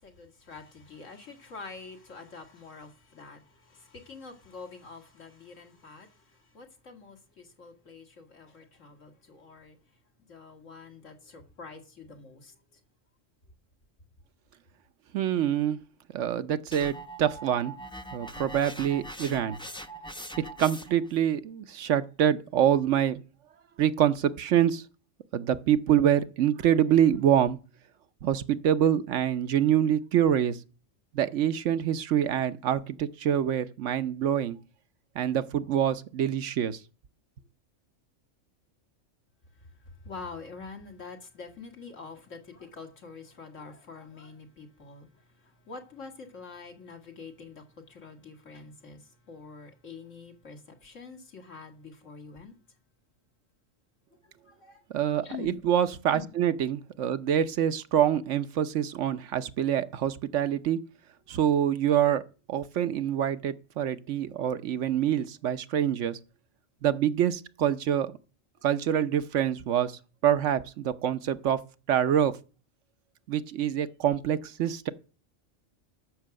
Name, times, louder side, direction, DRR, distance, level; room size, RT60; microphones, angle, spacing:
voice 1, 0.0-9.8 10.2-12.8 39.8-52.5 54.2-54.8 55.2-55.6 56.1-56.3 61.3-61.4, left 4 dB, 80° left, 2.3 m, -46 dB
voice 2, 15.1-15.8 16.1-17.7 18.1-19.6 20.4-23.2 23.8-24.8 25.3-27.6 28.2-30.6 31.1-34.6 35.2-36.8 54.9-60.8 61.3-62.2 62.5-66.2 66.8-68.1 68.6-71.6 71.9-72.4 73.3-74.9, right 10 dB, 75° right, 1.1 m, -26 dB
sound 1, 16.7-21.1, right 1 dB, 5° left, 0.5 m, -42 dB
13.0 x 6.0 x 7.6 m
omnidirectional pair, 1.3 m